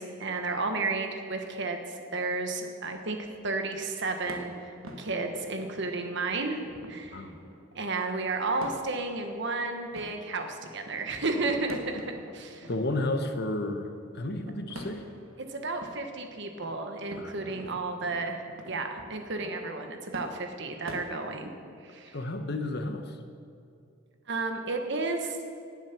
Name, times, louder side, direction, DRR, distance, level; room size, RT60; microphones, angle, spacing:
voice 1, 0.0-7.3 7.7-12.0 12.3-12.7 15.5-21.5 21.8-22.2 24.3-25.4, right 3 dB, 60° right, 5 dB, 1.4 m, -32 dB
sound 1, 4.3-21.6, equal, 85° right, 1.4 m, -47 dB
voice 2, 12.7-13.9 14.1-15.1 17.2-17.3 22.1-23.2, left 2 dB, 55° left, 6 dB, 1.1 m, -32 dB
18.0 x 7.4 x 6.0 m, 2.5 s
head